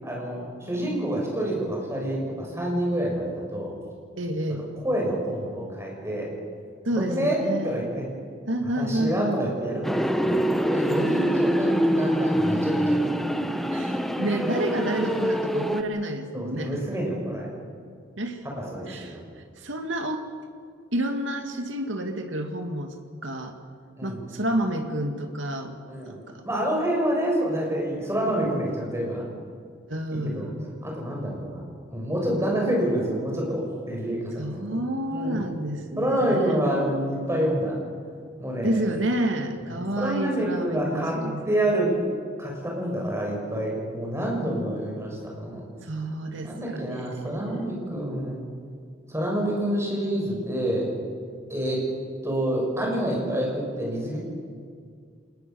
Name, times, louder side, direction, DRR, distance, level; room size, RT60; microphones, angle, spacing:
voice 1, 0.0-3.7 4.8-6.3 6.9-8.0 8.7-10.4 10.7-13.1 13.4-13.5 16.3-17.5 18.5-19.2 24.0-24.2 25.9-29.2 30.1-30.5 30.8-31.6 31.9-34.5 35.1-35.5 36.0-37.7 38.4-38.8 39.7-41.2 41.4-41.9 42.4-45.6 46.4-48.4 49.1-50.9 51.5-51.8 52.2-54.2, right 1 dB, 15° right, -1 dB, 6.7 m, -27 dB
voice 2, 4.2-4.6 6.8-7.8 8.5-9.4 10.8-11.4 13.7-16.8 18.2-18.4 18.9-20.3 20.9-23.0 23.2-23.5 24.0-25.8 26.1-26.4 29.9-30.5 34.4-36.6 38.6-41.4 45.8-47.1 47.4-47.8, right 1 dB, 80° right, 5 dB, 2.3 m, -29 dB
sound 1, 9.8-15.8, equal, ahead, 1.2 m, -25 dB
27.5 x 20.0 x 7.2 m, 2.1 s
head